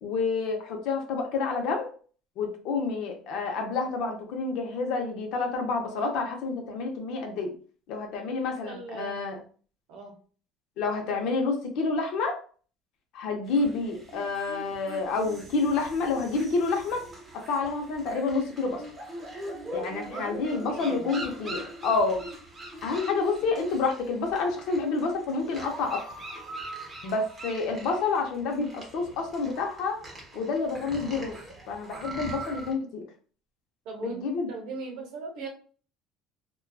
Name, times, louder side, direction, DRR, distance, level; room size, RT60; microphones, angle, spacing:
voice 1, 0.0-1.9 2.4-7.5 7.9-9.4 10.8-12.4 13.1-17.0 17.5-18.8 19.7-22.2 22.8-26.0 27.0-30.0 30.3-31.4 31.7-33.0 34.0-34.5, left 4 dB, 60° left, 3 dB, 0.6 m, -29 dB
voice 2, 8.5-9.2 9.9-10.2 19.8-21.1 33.8-35.5, right 3 dB, 65° right, 2 dB, 0.7 m, -40 dB
sound 1, 13.5-32.7, right 1 dB, 20° right, 0.7 m, -41 dB
2.5 x 2.2 x 2.3 m, 0.41 s
cardioid pair, 155°, 0 cm